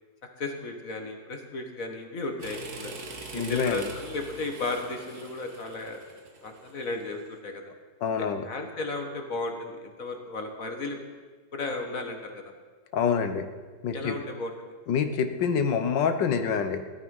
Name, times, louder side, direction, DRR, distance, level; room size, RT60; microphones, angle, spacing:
voice 1, 0.4-2.9 3.3-6.0 6.4-7.6 8.2-11.0 11.5-12.4 13.9-14.5, left 3 dB, 45° left, 4 dB, 2.0 m, -34 dB
sound 1, 2.4-7.3, right 3 dB, 55° right, 2.0 m, -43 dB
voice 2, 3.3-3.8 8.0-8.4 12.9-13.5 13.8-14.2 14.9-16.8, left 6 dB, 70° left, 8 dB, 1.7 m, -26 dB
17.5 x 12.5 x 5.5 m, 1.4 s
omnidirectional pair, 2.1 m